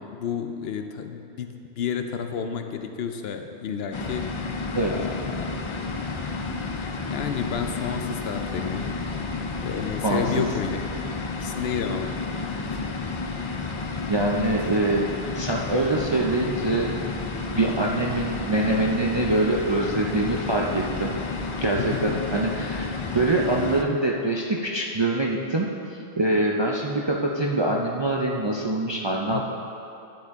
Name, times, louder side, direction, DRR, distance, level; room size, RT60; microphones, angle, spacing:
voice 1, 0.0-4.5 4.8-5.6 7.1-9.0 9.6-10.8 11.3-12.1 12.6-12.8 14.3-14.6 21.8-22.2 29.3-29.4, left 7 dB, 70° left, 6 dB, 0.8 m, -31 dB
sound 1, 3.9-23.8, left 4 dB, 45° left, 0.4 m, -31 dB
voice 2, 10.0-10.5 14.1-15.1 15.3-16.9 17.6-21.2 21.6-29.4, right 2 dB, 35° right, -2 dB, 0.4 m, -24 dB
11.0 x 7.6 x 3.6 m, 2.8 s
omnidirectional pair, 1.1 m